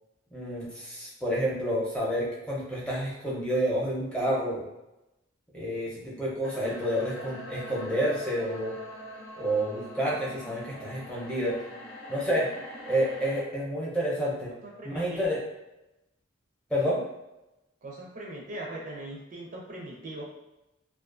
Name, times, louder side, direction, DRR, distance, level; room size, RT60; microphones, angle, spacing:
voice 1, 0.3-4.6 5.5-8.7 9.4-11.6 12.1-12.5 12.9-14.5 14.8-15.4 16.7-17.0, equal, 5° left, -6 dB, 0.6 m, -29 dB
sound 1, 6.4-13.4, equal, 70° left, 0.5 m, -43 dB
voice 2, 14.6-15.3 17.8-20.2, right 1 dB, 40° right, -2 dB, 0.5 m, -40 dB
2.4 x 2.4 x 2.4 m, 0.95 s
head